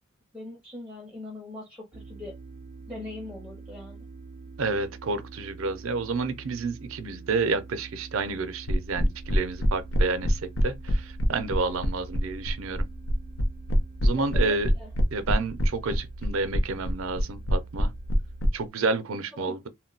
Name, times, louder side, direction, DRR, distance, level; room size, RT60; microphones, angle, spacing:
voice 1, 0.3-2.4 2.9-4.0 14.2-14.9 19.3-19.6, left 2 dB, 5° right, 0.7 m, -41 dB
sound 1, 1.9-18.4, right 4 dB, 30° right, 0.3 m, -45 dB
voice 2, 4.6-12.8 14.0-14.7 15.1-17.9 18.5-19.7, right 3 dB, 90° right, 0.5 m, -30 dB
sound 2, 8.7-18.5, equal, 85° left, 0.6 m, -24 dB
2.2 x 2.1 x 3.8 m
head